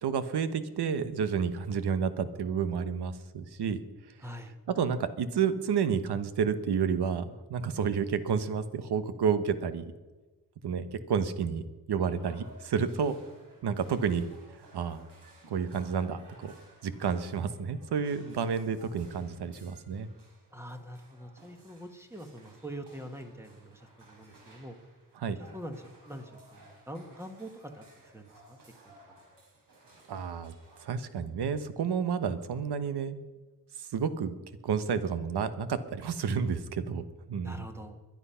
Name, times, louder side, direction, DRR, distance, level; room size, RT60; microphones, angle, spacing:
voice 1, 0.0-3.8 4.8-9.9 10.6-11.6 11.9-13.2 13.6-14.3 14.7-15.1 15.5-16.5 16.8-20.1 25.2-25.4 30.1-30.5 30.8-33.2 33.9-34.3 34.6-37.6, right 6 dB, 85° right, 12 dB, 1.2 m, -30 dB
voice 2, 4.2-4.6 20.5-24.8 25.4-28.6 28.8-29.3 37.4-38.1, equal, 5° right, 6 dB, 1.3 m, -44 dB
sound 1, 12.1-30.8, right 2 dB, 55° right, 4.7 m, -58 dB
21.5 x 11.0 x 5.7 m, 1.2 s
wide cardioid pair, 180°, 39 cm